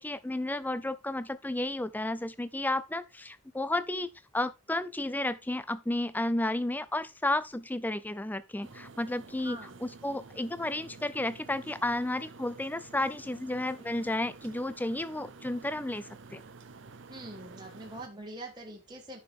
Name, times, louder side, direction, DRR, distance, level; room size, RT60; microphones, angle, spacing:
voice 1, 0.0-16.4, left 1 dB, 10° left, 0.4 m, -32 dB
sound 1, 8.6-18.1, right 4 dB, 55° right, 0.6 m, -50 dB
voice 2, 9.4-9.8 17.1-19.2, right 1 dB, 20° right, 1.5 m, -44 dB
10.0 x 5.9 x 3.5 m
head